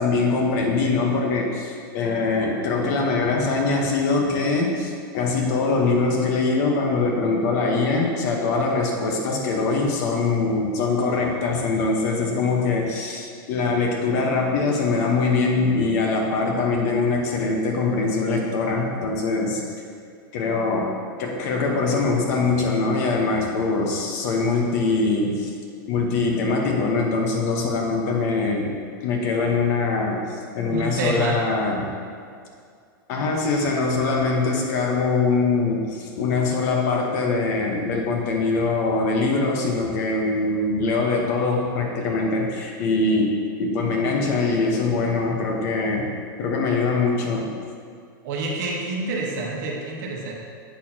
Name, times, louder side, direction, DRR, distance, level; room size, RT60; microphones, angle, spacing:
voice 1, 0.0-19.6 20.3-20.9 21.2-25.5 25.9-28.8 29.0-31.9 33.1-46.1 46.4-47.5, left 3 dB, 50° left, 1 dB, 1.1 m, -23 dB
voice 2, 30.7-31.4 48.2-50.3, right 2 dB, 55° right, -1 dB, 1.3 m, -28 dB
8.1 x 6.4 x 2.9 m, 2.3 s
supercardioid pair, 155°, 12 cm